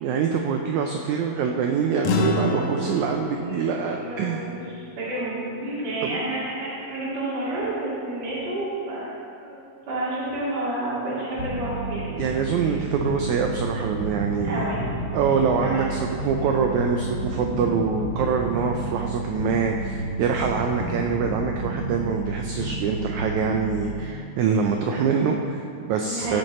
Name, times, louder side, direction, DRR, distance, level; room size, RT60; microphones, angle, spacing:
voice 1, 0.0-4.5 6.0-6.2 12.2-14.6 15.1-26.4, right 6 dB, 80° right, 3 dB, 1.7 m, -25 dB
sound 1, 2.0-6.7, left 3 dB, 75° left, 1.7 m, -30 dB
voice 2, 3.9-4.6 5.0-9.1 9.4-9.6 9.9-12.1 12.7-12.8 14.4-14.9 15.6-16.0 26.1-26.4, right 2 dB, 55° right, -9 dB, 3.6 m, -30 dB
sound 2, 11.4-24.3, right 2 dB, 30° left, 1.4 m, -31 dB
15.0 x 6.6 x 4.2 m, 2.5 s
omnidirectional pair, 4.0 m